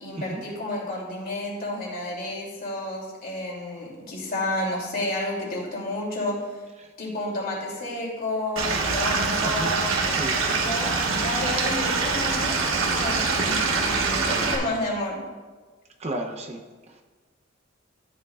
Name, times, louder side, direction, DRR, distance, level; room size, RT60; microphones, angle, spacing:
voice 1, 0.0-6.6 7.0-15.2, left 1 dB, 50° left, -3 dB, 2.8 m, -31 dB
Stream / Liquid, 8.6-14.6, right 4 dB, 90° right, 1.4 m, -24 dB
voice 2, 9.4-10.6 16.0-16.6, right 1 dB, 35° right, 3 dB, 0.7 m, -34 dB
12.5 x 9.3 x 2.4 m, 1.4 s
head